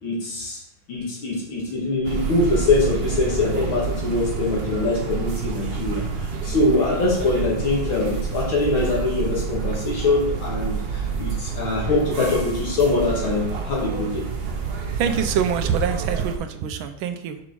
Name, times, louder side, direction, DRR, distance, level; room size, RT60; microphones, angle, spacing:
voice 1, 0.0-0.6 0.9-14.3, left 3 dB, 80° left, -3 dB, 2.9 m, -23 dB
sound 1, 2.0-16.4, right 5 dB, 55° right, 0.6 m, -28 dB
voice 2, 15.0-17.4, right 7 dB, 85° right, 8 dB, 1.5 m, -25 dB
6.0 x 5.2 x 4.6 m, 0.76 s
omnidirectional pair, 2.2 m